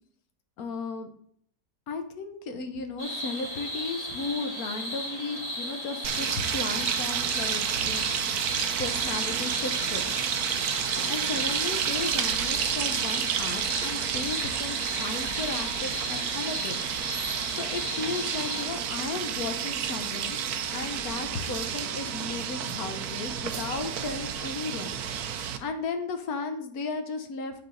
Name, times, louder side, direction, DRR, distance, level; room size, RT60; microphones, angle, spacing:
voice 1, 0.6-1.1 1.9-8.2 8.8-10.2 10.9-16.8 17.6-20.4 20.7-25.0 25.6-27.5, left 4 dB, 60° left, 7 dB, 1.2 m, -35 dB
sound 1, 3.0-18.7, equal, 20° left, 1.9 m, -35 dB
sound 2, 6.0-25.6, right 8 dB, 70° right, 1.1 m, -30 dB
7.8 x 5.6 x 3.8 m, 0.66 s
omnidirectional pair, 1.9 m